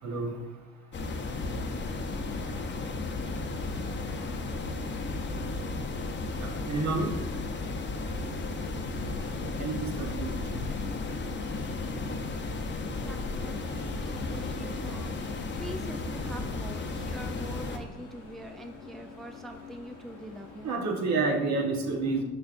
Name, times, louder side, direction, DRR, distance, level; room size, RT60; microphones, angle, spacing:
voice 1, 0.0-0.4 6.4-7.1 9.4-10.6 20.6-22.2, right 3 dB, 60° right, 1 dB, 1.3 m, -29 dB
sound 1, 0.9-17.8, left 3 dB, 35° left, 0.8 m, -34 dB
Train, 1.3-20.7, left 4 dB, 75° left, 1.1 m, -45 dB
voice 2, 4.0-4.3 8.9-9.6 11.8-12.6 12.9-20.8, equal, ahead, 5 dB, 0.4 m, -45 dB
6.6 x 5.5 x 2.6 m, 1.1 s
supercardioid pair, 70°, 32 cm